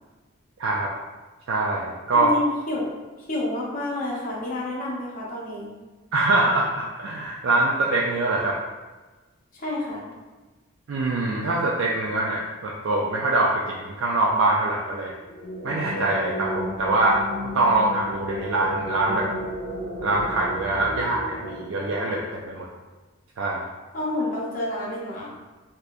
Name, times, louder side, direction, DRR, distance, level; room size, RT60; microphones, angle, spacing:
voice 1, 1.5-2.3 6.1-8.6 10.9-15.1 15.6-17.2 17.5-19.3 20.0-22.7 23.4-23.6, right 2 dB, 65° right, -2 dB, 0.3 m, -24 dB
voice 2, 2.1-2.9 3.2-5.7 9.5-10.0 23.9-25.3, left 2 dB, 40° left, -4 dB, 0.7 m, -29 dB
sound 1, 15.2-22.6, equal, 75° left, 0.7 m, -34 dB
3.3 x 2.8 x 2.4 m, 1.2 s
head